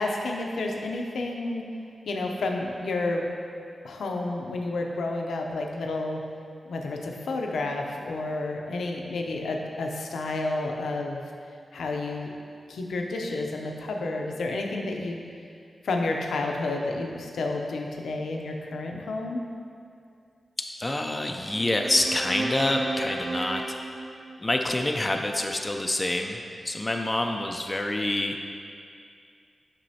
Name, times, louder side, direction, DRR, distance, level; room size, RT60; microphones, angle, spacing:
voice 1, 0.0-1.6 2.1-3.3 3.8-6.2 6.6-11.2 11.7-12.3 12.7-15.2 15.8-19.4, left 2 dB, 85° left, 1 dB, 0.5 m, -30 dB
voice 2, 20.6-23.6 24.4-26.4 26.6-28.4, left 1 dB, 25° left, 3 dB, 0.4 m, -27 dB
Consonance Example, 21.4-24.8, right 2 dB, 65° right, 0.9 m, -34 dB
7.3 x 5.3 x 2.8 m, 2.4 s
cardioid pair, 45°, 0 cm